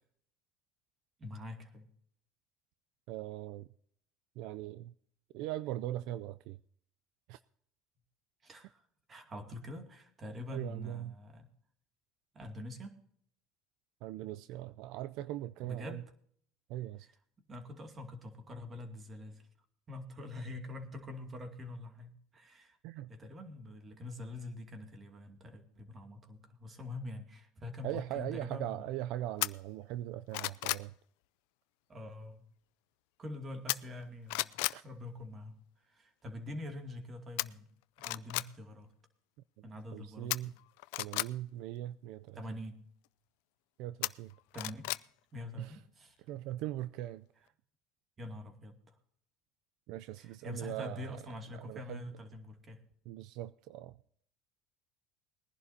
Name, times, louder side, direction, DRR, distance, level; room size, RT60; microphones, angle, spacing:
voice 1, 1.2-1.9 8.4-11.5 12.3-13.0 15.6-16.1 17.0-17.1 17.5-19.5 19.9-22.8 23.1-28.8 31.9-32.4 33.2-35.6 35.8-37.7 38.0-38.9 39.6-40.5 42.3-42.8 44.5-44.8 45.3-46.2 48.2-49.0 50.2-52.8, left 2 dB, 30° right, 2.4 m, -45 dB
voice 2, 3.1-3.7 4.4-4.9 5.3-6.6 7.3-7.4 10.5-11.1 14.0-16.0 16.7-17.1 22.8-23.1 27.8-30.9 34.7-34.8 39.9-40.5 41.0-42.4 43.8-44.3 45.6-45.8 46.3-47.5 49.9-51.2 51.5-52.1 53.1-54.0, right 14 dB, 65° right, 0.4 m, -40 dB
sound 1, 29.4-29.5 30.0-30.9 33.7-34.0 34.3-34.8 37.4-37.5 38.0-38.5 40.3-41.3 44.0-45.0 45.4-45.5, left 23 dB, 75° left, 0.4 m, -34 dB
21.5 x 11.0 x 2.8 m
supercardioid pair, 110°, 0 cm